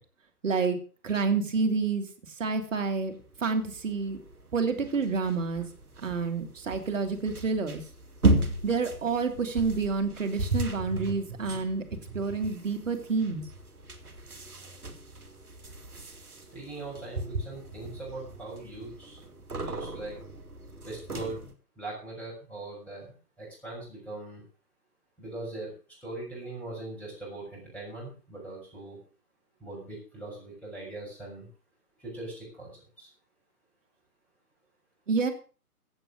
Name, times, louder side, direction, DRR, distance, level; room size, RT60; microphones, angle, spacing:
voice 1, 0.4-0.8 1.0-2.0 2.4-3.1 3.4-4.2 4.5-5.7 6.0-7.8 8.6-11.8 12.1-13.4 35.1-35.3, right 4 dB, 55° right, 7 dB, 2.9 m, -28 dB
sound 1, 3.2-21.5, right 2 dB, 70° right, 2.5 m, -35 dB
voice 2, 16.5-19.2 19.6-20.2 20.8-21.4 21.8-24.4 25.2-25.7 26.0-29.0 29.6-31.5 32.0-33.1, right 2 dB, 5° left, -4 dB, 6.8 m, -40 dB
15.5 x 8.0 x 6.3 m, 0.38 s
figure-of-eight pair, 130°, 46 cm